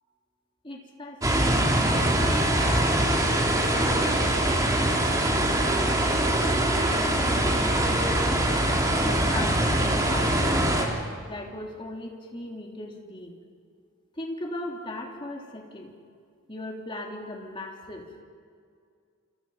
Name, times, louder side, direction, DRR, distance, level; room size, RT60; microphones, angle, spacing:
voice 1, 0.6-8.3 9.0-10.8 11.3-13.3 14.2-16.0 16.5-18.2, left 1 dB, 25° left, 0 dB, 3.2 m, -39 dB
sound 1, 1.2-10.9, right 1 dB, 15° right, 2.9 m, -23 dB
28.5 x 28.0 x 5.7 m, 2.2 s
head